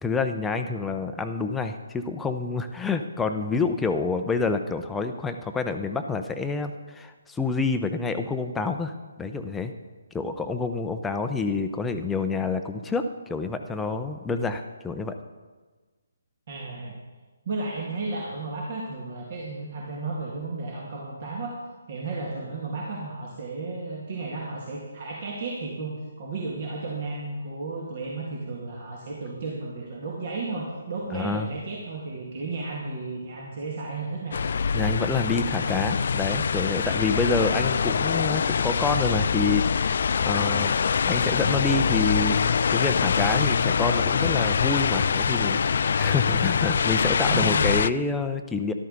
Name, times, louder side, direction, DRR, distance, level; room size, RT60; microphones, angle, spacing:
voice 1, 0.0-9.7 10.1-15.2 31.1-31.5 34.7-39.9 40.2-40.8 41.0-48.7, left 4 dB, 5° left, 6 dB, 0.7 m, -28 dB
voice 2, 16.5-16.9 17.5-21.5 21.9-34.4 47.3-47.8, right 3 dB, 40° right, -3 dB, 2.1 m, -33 dB
sound 1, 34.3-47.9, left 6 dB, 50° left, 0.3 m, -24 dB
13.5 x 12.5 x 4.0 m, 1.3 s
figure-of-eight pair, 140°, 0 cm